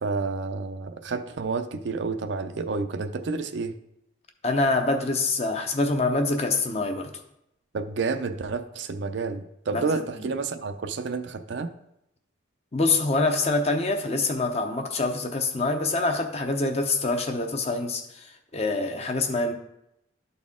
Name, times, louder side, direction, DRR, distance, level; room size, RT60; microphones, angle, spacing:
voice 1, 0.0-3.7 7.7-11.7, right 4 dB, 65° right, 8 dB, 0.5 m, -30 dB
voice 2, 4.4-7.2 9.7-9.8 12.7-19.5, left 3 dB, 35° left, 5 dB, 0.7 m, -25 dB
11.5 x 4.2 x 3.6 m, 0.82 s
head